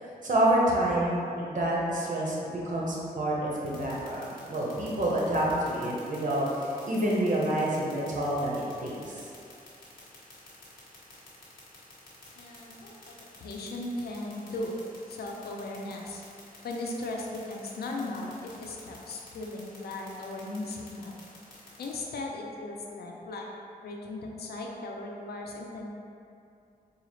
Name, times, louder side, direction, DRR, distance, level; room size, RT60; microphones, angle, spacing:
voice 1, 0.2-9.3, right 1 dB, 55° right, -5 dB, 1.0 m, -28 dB
sound 1, 3.7-21.9, left 3 dB, 65° left, 1.4 m, -50 dB
voice 2, 12.4-13.2 13.4-16.2 16.6-21.2 21.8-23.5 23.8-25.9, left 2 dB, 85° left, -1 dB, 0.5 m, -37 dB
4.8 x 2.4 x 3.1 m, 2.6 s
cardioid pair, 80°, 16 cm